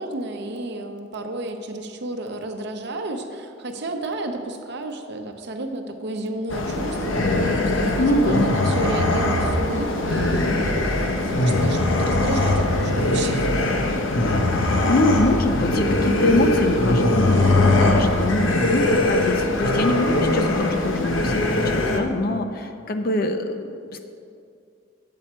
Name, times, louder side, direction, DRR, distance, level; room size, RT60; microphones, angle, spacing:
voice 1, 0.0-13.5, right 1 dB, 60° right, 5 dB, 0.7 m, -31 dB
sound 1, 6.5-22.0, left 2 dB, 90° left, 0.8 m, -21 dB
voice 2, 8.0-8.5 14.8-24.0, left 1 dB, 50° left, 7 dB, 0.6 m, -24 dB
8.6 x 7.7 x 4.3 m, 2.4 s
head